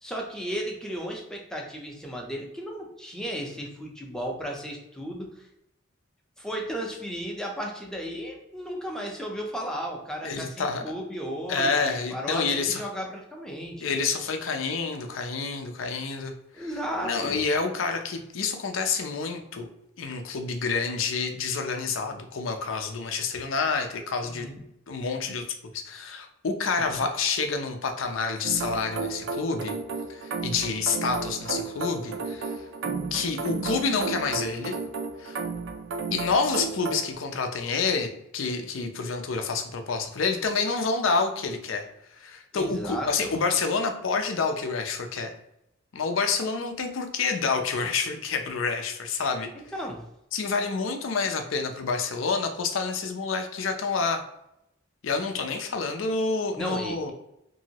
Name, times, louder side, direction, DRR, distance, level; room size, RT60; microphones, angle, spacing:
voice 1, 0.0-5.4 6.4-13.9 16.5-17.4 24.2-24.6 26.8-27.1 42.5-43.3 49.7-50.0 56.6-57.0, equal, 5° left, 0 dB, 0.5 m, -34 dB
voice 2, 10.2-10.8 11.5-12.8 13.8-16.7 17.0-19.7 20.0-24.5 24.9-25.4 25.7-29.8 30.1-32.5 33.1-34.8 35.2-35.4 36.1-41.8 42.2-45.3 45.9-49.5 50.3-54.2 55.0-57.1, left 4 dB, 70° left, 6 dB, 0.5 m, -28 dB
sound 1, 28.4-37.1, right 4 dB, 60° right, 0.4 m, -33 dB
2.9 x 2.6 x 2.8 m, 0.82 s
head